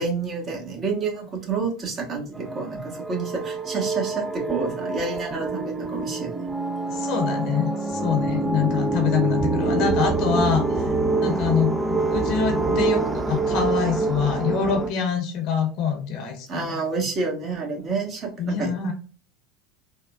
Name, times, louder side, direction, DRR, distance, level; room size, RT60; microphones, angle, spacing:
voice 1, 0.0-6.5 16.5-18.7, right 4 dB, 35° right, 1 dB, 1.2 m, -29 dB
sound 1, 2.3-14.9, right 3 dB, 15° right, 0.4 m, -26 dB
voice 2, 6.9-10.9 11.2-11.7 12.1-16.8 18.4-18.9, left 6 dB, 55° left, 5 dB, 0.8 m, -25 dB
3.5 x 2.3 x 2.3 m, 0.38 s
hypercardioid pair, 80°, 0 cm